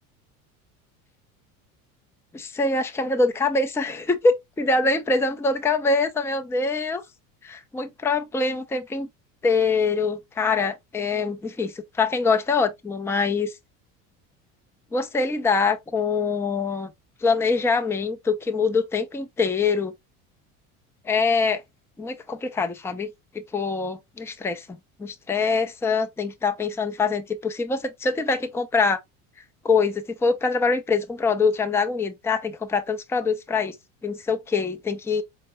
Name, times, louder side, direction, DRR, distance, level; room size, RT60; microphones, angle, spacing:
voice 1, 2.3-7.0 7.4-9.1 9.4-13.5 14.9-16.9 17.2-19.9 21.0-21.6 22.0-23.1 23.5-29.0 29.6-33.8 34.0-35.2, left 4 dB, 5° left, 0.4 m, -24 dB
4.4 x 2.0 x 3.0 m
supercardioid pair, 90°, 39 cm